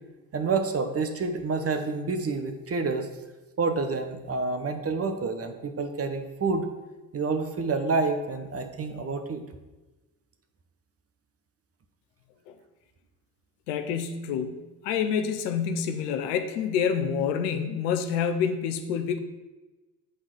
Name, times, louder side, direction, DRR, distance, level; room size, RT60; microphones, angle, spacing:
voice 1, 0.3-3.1 3.6-6.7 7.1-9.4, right 4 dB, 30° right, 6 dB, 0.9 m, -28 dB
voice 2, 13.7-19.2, left 7 dB, 75° left, 8 dB, 0.7 m, -28 dB
8.8 x 3.9 x 4.6 m, 1.1 s
hypercardioid pair, 50°, 48 cm